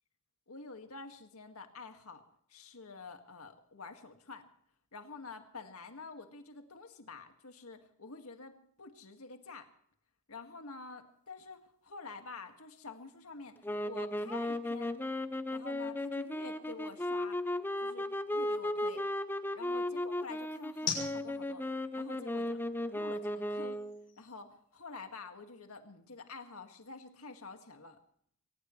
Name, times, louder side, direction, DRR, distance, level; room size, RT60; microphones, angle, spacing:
voice 1, 0.5-2.2 2.5-4.4 4.9-9.7 10.3-15.0 15.5-17.4 17.8-19.0 19.5-22.6 22.9-23.8 24.2-28.0, left 4 dB, 90° left, 6 dB, 1.9 m, -48 dB
sound 1, 11.1-25.3, left 6 dB, 45° left, 6.8 m, -49 dB
sound 2, 13.6-24.0, left 1 dB, 10° left, 0.6 m, -36 dB
23.5 x 18.0 x 3.2 m, 0.65 s
head